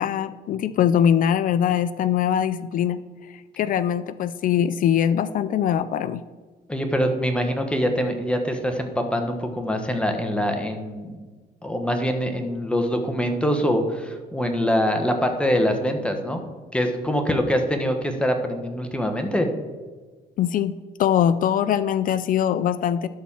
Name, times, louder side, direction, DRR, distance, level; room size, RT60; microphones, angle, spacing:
voice 1, 0.0-3.0 3.3-6.2 20.4-20.7 21.0-23.1, left 9 dB, 55° left, 14 dB, 0.5 m, -22 dB
voice 2, 6.7-11.2 11.6-16.4 16.7-19.5, equal, 5° left, 4 dB, 1.2 m, -24 dB
12.0 x 4.2 x 7.2 m, 1.3 s
cardioid pair, 110°, 17 cm